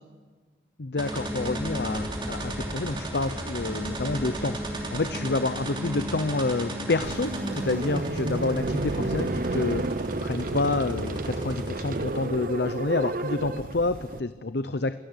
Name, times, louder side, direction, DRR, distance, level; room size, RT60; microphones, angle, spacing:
voice 1, 0.8-15.0, left 3 dB, 70° left, 11 dB, 0.8 m, -28 dB
sound 1, 1.0-12.6, right 1 dB, 25° right, 3.2 m, -34 dB
sound 2, 7.0-14.2, right 2 dB, 50° right, 0.7 m, -31 dB
27.0 x 13.0 x 9.8 m, 1.4 s
head